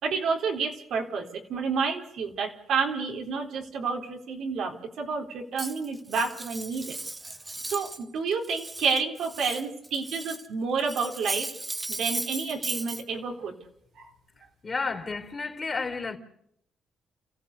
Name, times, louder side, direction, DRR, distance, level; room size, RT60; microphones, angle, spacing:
voice 1, 0.0-7.0 7.7-11.5 11.9-13.5 14.0-14.1, right 5 dB, 70° right, 3.8 m, -30 dB
Cutlery silverware, 5.6-8.0 8.3-10.5 10.8-13.0, right 2 dB, 15° right, 1.5 m, -36 dB
voice 2, 14.6-16.2, left 4 dB, 30° left, 3.9 m, -31 dB
29.5 x 15.5 x 8.3 m
cardioid pair, 90°, 0 cm